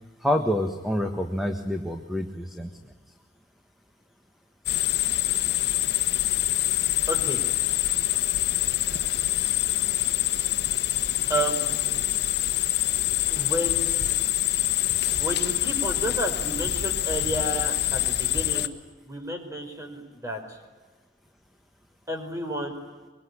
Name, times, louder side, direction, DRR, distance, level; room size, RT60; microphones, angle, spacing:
voice 1, 0.2-2.7 18.5-18.7, left 1 dB, ahead, 4 dB, 1.5 m, -27 dB
sound 1, 4.7-18.7, left 13 dB, 65° left, 1.3 m, -25 dB
voice 2, 7.1-7.4 11.3-12.0 13.3-14.1 15.2-18.7 19.0-20.6 22.1-22.8, right 1 dB, 15° right, 4 dB, 5.1 m, -31 dB
24.5 x 23.0 x 9.9 m, 1.3 s
head